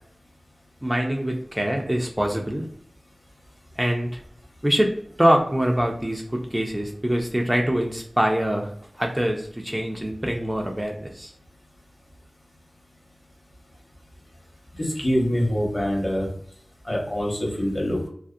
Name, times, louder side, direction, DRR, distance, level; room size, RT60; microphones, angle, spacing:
voice 1, 0.8-2.6 3.8-4.1 4.6-4.9 5.2-8.7 9.0-11.3, equal, 15° right, 1 dB, 0.4 m, -24 dB
voice 2, 14.8-16.3 16.9-18.1, equal, 40° left, -2 dB, 1.0 m, -24 dB
2.3 x 2.0 x 2.6 m, 0.65 s
wide cardioid pair, 45°, 0 cm